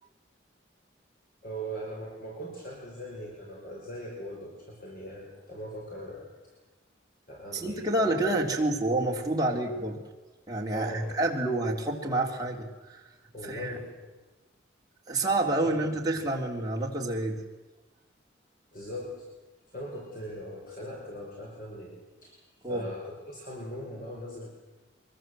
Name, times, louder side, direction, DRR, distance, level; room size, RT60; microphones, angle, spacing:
voice 1, 1.4-6.3 7.3-8.1 10.7-11.2 13.3-14.1 15.2-15.8 18.7-19.3 19.7-22.4 22.6-24.6, equal, 45° left, -2 dB, 5.1 m, -40 dB
voice 2, 7.5-10.0 10.5-13.0 13.4-13.7 15.1-17.4 22.6-22.8, right 2 dB, 20° right, -2 dB, 3.5 m, -28 dB
24.0 x 22.0 x 7.8 m, 1.2 s
head